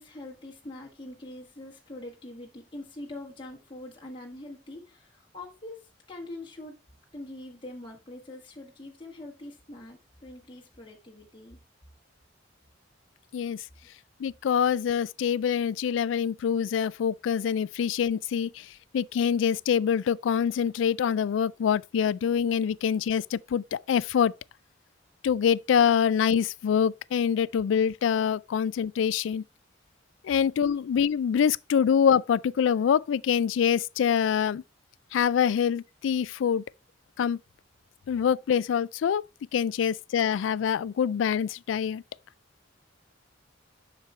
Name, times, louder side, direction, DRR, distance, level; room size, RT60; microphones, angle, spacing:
voice 1, 0.0-6.8 7.1-11.6 13.8-13.9, left 1 dB, 25° left, 1.5 m, -43 dB
voice 2, 14.2-18.7 18.9-24.3 25.2-29.4 30.2-34.6 35.1-36.6 37.2-37.4 38.1-39.2 39.5-42.0, left 7 dB, 85° left, 0.3 m, -25 dB
7.5 x 6.2 x 3.2 m
head